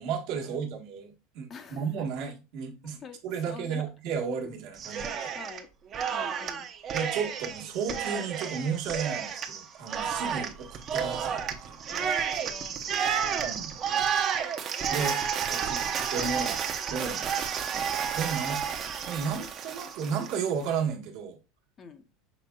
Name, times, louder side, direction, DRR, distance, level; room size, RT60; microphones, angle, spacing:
voice 1, 0.0-5.3 6.9-12.1 13.4-13.7 14.9-15.2 15.5-15.8 16.1-16.6 16.9-17.2 18.1-18.6 19.1-21.4, right 6 dB, 60° right, 1.2 m, -33 dB
voice 2, 1.5-1.8 3.0-3.2 3.5-3.8 5.3-5.7 6.1-6.7 11.9-13.4 13.8-14.0 15.8-16.0 17.2-17.4 18.4-18.5 21.8-22.1, left 5 dB, 30° left, 0.7 m, -46 dB
Cheering, 4.8-5.6 5.9-20.4, right 7 dB, 35° right, 0.7 m, -31 dB
6.1 x 3.5 x 2.2 m
supercardioid pair, 125°, 0 cm